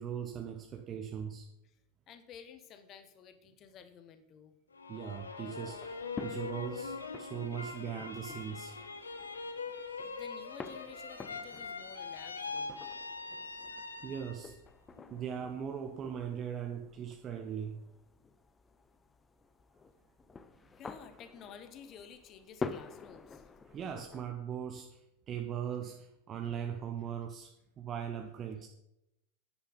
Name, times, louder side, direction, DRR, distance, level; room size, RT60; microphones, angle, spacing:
voice 1, 0.0-1.5 4.9-8.7 13.7-14.6 15.1-17.8 23.7-28.7, right 8 dB, 30° right, 4 dB, 1.1 m, -40 dB
voice 2, 2.1-4.5 9.7-9.8 10.0-12.8 20.8-23.5, left 7 dB, 30° left, 10 dB, 1.3 m, -52 dB
sound 1, 4.7-14.5 15.0-15.6, left 4 dB, 75° left, 1.1 m, -42 dB
sound 2, 5.5-24.3, left 4 dB, 15° left, 0.7 m, -49 dB
10.5 x 10.0 x 5.2 m, 0.84 s
figure-of-eight pair, 90°, 0 cm